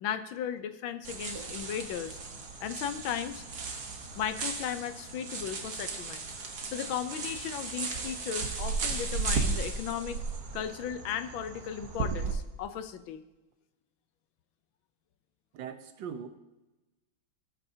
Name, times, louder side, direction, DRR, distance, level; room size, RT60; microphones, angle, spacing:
voice 1, 0.0-2.2 2.6-3.4 4.1-6.3 6.7-10.2 10.5-13.2, left 9 dB, 80° left, 10 dB, 1.5 m, -36 dB
sound 1, 1.0-12.3, right 4 dB, 55° right, 1.6 m, -35 dB
voice 2, 15.5-16.3, right 7 dB, 75° right, 8 dB, 1.5 m, -40 dB
17.5 x 8.2 x 2.8 m, 1.1 s
omnidirectional pair, 2.1 m